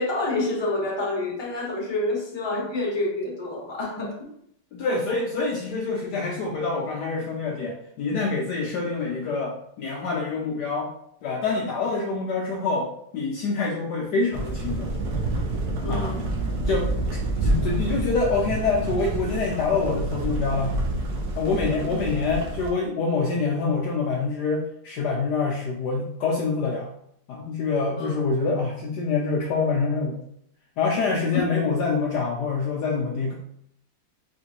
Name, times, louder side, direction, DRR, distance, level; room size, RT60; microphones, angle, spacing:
voice 1, 0.0-4.3 15.8-16.2 28.0-28.1 31.3-31.5, left 2 dB, 20° left, -4 dB, 0.9 m, -28 dB
voice 2, 4.7-10.9 11.2-15.0 15.9-16.1 16.7-20.7 21.4-26.9 27.3-30.2 30.8-33.3, left 4 dB, 70° left, -1 dB, 1.0 m, -26 dB
sound 1, 14.3-22.7, right 2 dB, 60° right, 1.1 m, -28 dB
4.4 x 3.2 x 2.9 m, 0.70 s
omnidirectional pair, 2.1 m